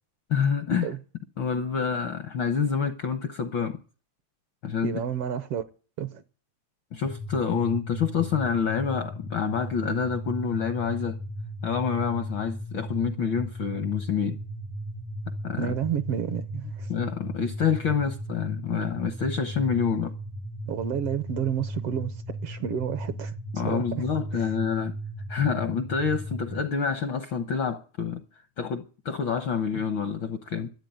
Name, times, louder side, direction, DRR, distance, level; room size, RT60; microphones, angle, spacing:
voice 1, 0.3-0.9 1.4-3.8 4.6-5.0 6.9-11.2 11.6-14.4 15.4-15.7 16.9-20.1 23.5-24.9 25.3-28.2 28.6-30.7, left 6 dB, 70° left, 1.1 m, -27 dB
voice 2, 4.8-5.6 6.0-6.2 15.6-16.9 20.7-23.3 23.6-24.0 24.3-24.5, right 8 dB, 70° right, 1.5 m, -30 dB
sound 1, 7.0-26.6, equal, 5° left, 0.4 m, -36 dB
13.0 x 8.2 x 9.3 m
omnidirectional pair, 3.3 m